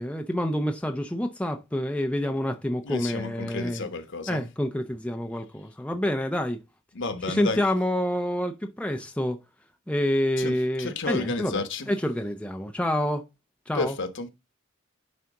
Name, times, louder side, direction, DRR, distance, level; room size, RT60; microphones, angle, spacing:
voice 1, 0.0-3.9 4.3-6.6 7.3-9.4 9.9-13.2 13.7-13.9, left 1 dB, 5° left, 0.5 m, -28 dB
voice 2, 2.8-4.4 6.9-7.6 10.4-11.9 13.7-14.3, left 3 dB, 55° left, 1.2 m, -31 dB
10.5 x 4.1 x 3.7 m
head